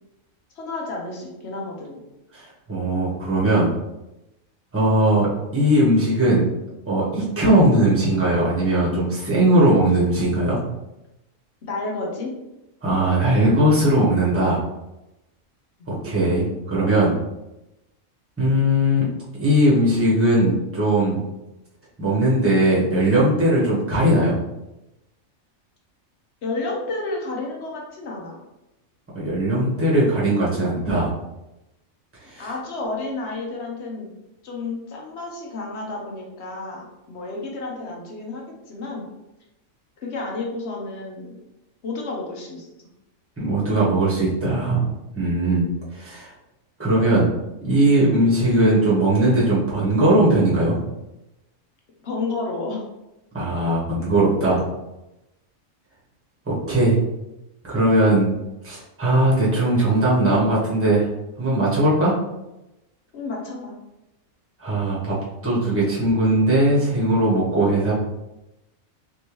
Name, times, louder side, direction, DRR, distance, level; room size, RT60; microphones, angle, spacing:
voice 1, 0.6-2.0 11.6-12.3 26.4-28.4 32.4-34.1 34.4-39.1 40.0-41.3 41.8-42.7 52.0-52.8 63.1-63.7, left 3 dB, 60° left, -1 dB, 1.1 m, -31 dB
voice 2, 2.3-3.7 4.7-6.5 6.8-10.6 12.8-14.6 15.9-17.1 18.4-19.1 19.4-21.2 22.0-24.4 29.1-31.1 32.2-32.5 43.4-44.8 45.1-45.6 45.9-46.3 46.8-47.3 47.6-50.8 53.3-54.6 56.5-57.0 57.6-58.3 58.6-61.1 61.4-62.1 64.6-65.2 65.4-67.9, right 1 dB, 10° right, -6 dB, 1.0 m, -19 dB
3.5 x 2.9 x 3.0 m, 0.94 s
omnidirectional pair, 1.4 m